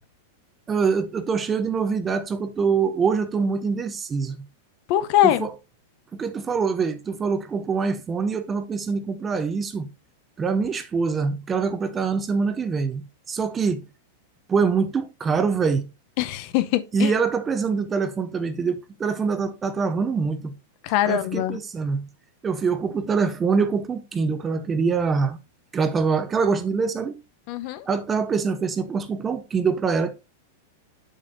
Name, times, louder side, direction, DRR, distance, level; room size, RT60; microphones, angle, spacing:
voice 1, 0.7-4.4 5.2-5.5 6.1-9.9 10.4-13.8 14.5-15.9 16.9-20.5 21.1-22.0 22.4-25.4 25.7-27.2 27.9-30.1, right 5 dB, 15° right, 0.5 m, -24 dB
voice 2, 4.9-5.5 16.2-17.1 20.8-21.6 27.5-27.8, left 13 dB, 40° left, 0.6 m, -22 dB
7.3 x 6.9 x 2.6 m
supercardioid pair, 165°, 0 cm